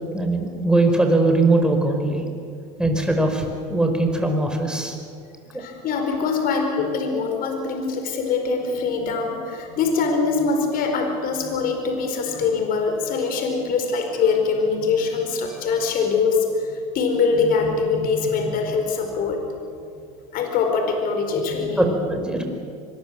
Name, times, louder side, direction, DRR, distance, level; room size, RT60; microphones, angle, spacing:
voice 1, 0.1-2.2 2.8-5.0 21.8-22.4, right 2 dB, 5° right, 3 dB, 5.0 m, -20 dB
voice 2, 5.5-19.4 20.3-21.9 22.3-22.4, left 4 dB, 55° left, 4 dB, 4.6 m, -23 dB
25.0 x 21.5 x 7.7 m, 2.4 s
supercardioid pair, 95°, 18 cm